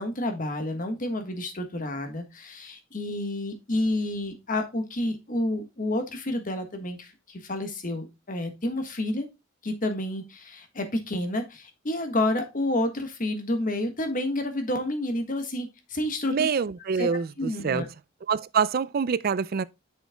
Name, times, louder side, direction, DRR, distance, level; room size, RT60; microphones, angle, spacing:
voice 1, 0.0-9.3 9.6-16.3 17.0-17.1 17.4-17.8, left 1 dB, 40° left, 1.5 m, -29 dB
voice 2, 16.3-17.9 18.3-19.6, right 6 dB, 50° right, 0.4 m, -26 dB
8.0 x 6.5 x 2.2 m
head